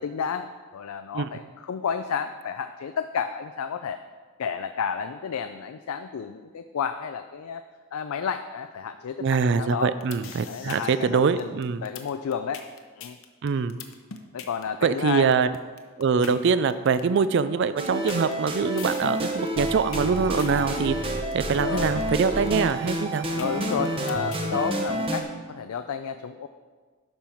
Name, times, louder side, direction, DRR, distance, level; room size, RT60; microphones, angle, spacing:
voice 1, 0.0-4.0 4.4-7.6 7.9-9.9 10.5-11.5 11.8-12.6 13.0-13.2 14.3-15.3 16.2-16.4 21.6-22.0 23.3-25.3 25.5-26.5, left 7 dB, 80° left, 9 dB, 0.4 m, -31 dB
voice 2, 9.2-11.8 13.4-13.8 14.8-15.5 16.0-23.3, right 5 dB, 55° right, 13 dB, 0.3 m, -24 dB
sound 1, 9.8-24.5, left 7 dB, 65° left, 0.8 m, -43 dB
sound 2, 17.8-25.2, right 1 dB, 25° right, 0.9 m, -29 dB
12.0 x 5.6 x 4.5 m, 1.5 s
head